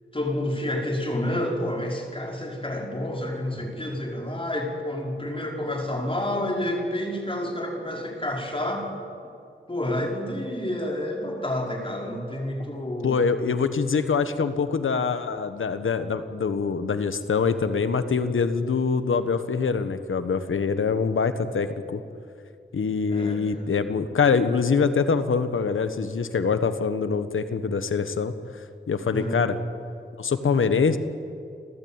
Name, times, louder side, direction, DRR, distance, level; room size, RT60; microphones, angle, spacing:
voice 1, 0.1-8.9 9.7-13.2 23.1-23.7 29.1-29.5, left 1 dB, 25° left, 0 dB, 4.9 m, -29 dB
voice 2, 13.0-22.0 22.7-28.3 28.9-29.6 30.2-31.0, left 5 dB, 85° left, 10 dB, 1.2 m, -24 dB
29.5 x 12.5 x 8.9 m, 2.4 s
wide cardioid pair, 70°, 20 cm